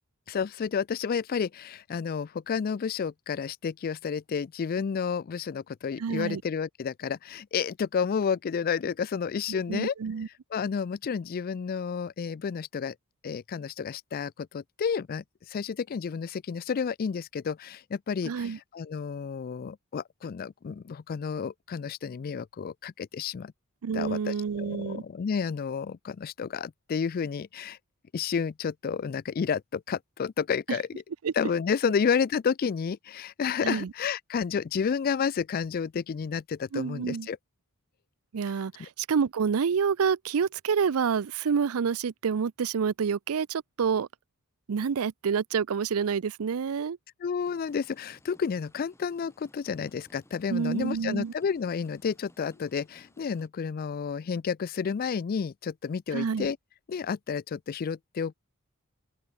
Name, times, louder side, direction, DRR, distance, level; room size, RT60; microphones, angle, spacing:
voice 1, 0.3-9.9 10.5-12.9 13.2-23.5 23.9-27.8 28.1-30.9 31.4-37.4 38.8-38.9 47.2-56.6 56.9-58.3, left 6 dB, 40° left, 0.3 m, -31 dB
voice 2, 6.0-6.4 9.5-10.3 18.3-18.6 23.8-25.0 30.7-30.8 31.2-31.3 33.6-33.9 36.7-37.3 38.3-44.1 44.7-47.0 50.5-51.3 56.1-56.5, right 6 dB, 75° right, 0.5 m, -28 dB
sound 1, 47.4-53.5, left 1 dB, 10° left, 7.6 m, -59 dB
open air
head